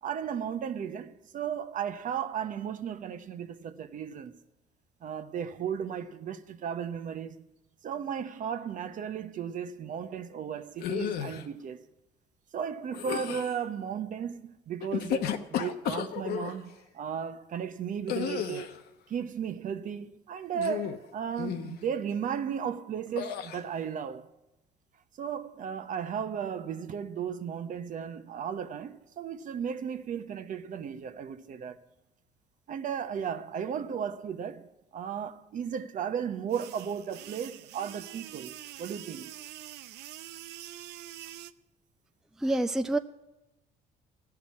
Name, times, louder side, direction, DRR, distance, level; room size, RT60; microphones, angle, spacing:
voice 1, 0.0-4.4 5.0-7.4 7.8-11.8 12.5-18.7 19.1-24.3 25.2-31.8 32.7-39.3, right 8 dB, 50° right, 0.8 m, -35 dB
sound 1, 10.8-11.5 12.9-13.6 14.8-16.6 18.1-18.8 20.5-21.1 21.4-21.8 23.2-23.6, left 9 dB, 70° left, 0.9 m, -33 dB
sound 2, 36.5-41.5, right 13 dB, 80° right, 0.5 m, -45 dB
voice 2, 42.4-43.0, right 1 dB, 5° right, 0.4 m, -27 dB
15.0 x 5.9 x 9.6 m
cardioid pair, 110°, 17 cm